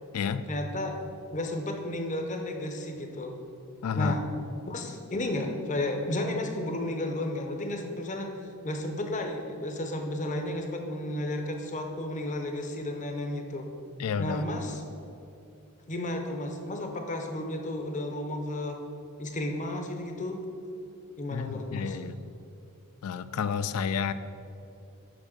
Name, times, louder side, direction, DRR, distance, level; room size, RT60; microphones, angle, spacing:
voice 1, 0.5-1.0 1.3-3.4 3.9-4.2 4.7-8.3 8.6-13.7 14.2-14.8 15.9-18.8 19.2-20.4 21.2-22.0, left 1 dB, 35° left, 4 dB, 0.7 m, -33 dB
voice 2, 3.8-4.2 14.0-14.5 21.3-22.1 23.0-24.1, left 6 dB, 75° left, 13 dB, 0.4 m, -30 dB
6.1 x 5.3 x 6.5 m, 2.7 s
head